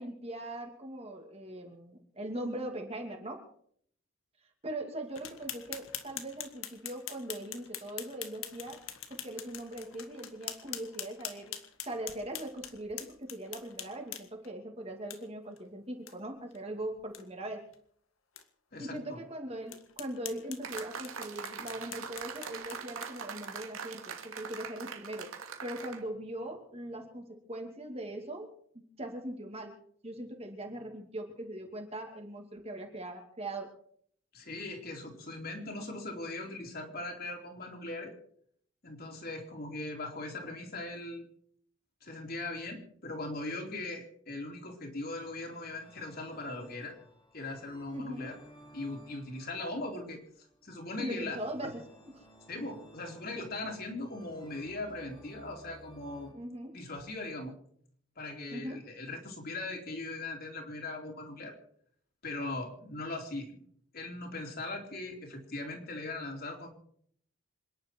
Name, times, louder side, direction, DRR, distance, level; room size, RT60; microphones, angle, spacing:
voice 1, 0.0-3.5 4.6-8.8 9.1-11.6 11.8-17.7 18.8-25.3 25.6-28.5 28.7-29.8 30.0-33.7 47.9-48.3 51.0-51.8 56.3-56.8 58.5-58.8, right 1 dB, 30° right, 3 dB, 2.6 m, -40 dB
sound 1, 5.1-14.5 15.1-15.2 15.6-15.7 16.1-16.2 16.5-16.6 17.0-17.2 17.7-17.8 18.4-18.5 19.0-19.1 19.7-23.7, left 10 dB, 75° left, 1.9 m, -44 dB
voice 2, 18.7-19.2 34.3-38.1 38.8-41.3 42.0-46.9 47.3-48.4 48.7-51.4 51.6-51.7 52.5-56.3 56.7-57.5 58.2-61.5 62.2-63.6 63.9-66.7, left 2 dB, 45° left, 1 dB, 3.9 m, -40 dB
sound 2, 20.6-26.0, right 6 dB, 75° right, 2.5 m, -42 dB
sound 3, 45.0-56.3, equal, 20° left, 3.4 m, -57 dB
27.0 x 11.0 x 4.6 m, 0.63 s
head